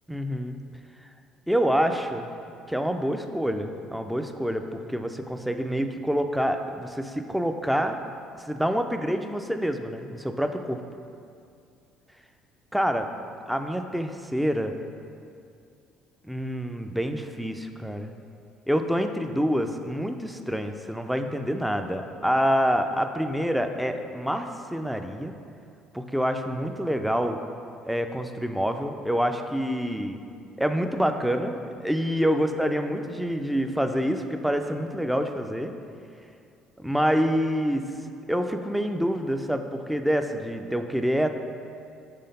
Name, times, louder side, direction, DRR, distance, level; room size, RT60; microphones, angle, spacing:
voice 1, 0.1-0.6 1.5-2.3 2.7-8.0 8.5-10.8 12.7-13.1 13.5-14.8 16.2-18.1 18.7-25.4 25.9-27.4 27.8-30.2 30.6-35.7 36.8-37.9 38.3-41.3, equal, 5° right, 6 dB, 0.4 m, -27 dB
5.6 x 3.4 x 5.3 m, 2.4 s
figure-of-eight pair, 55°, 0 cm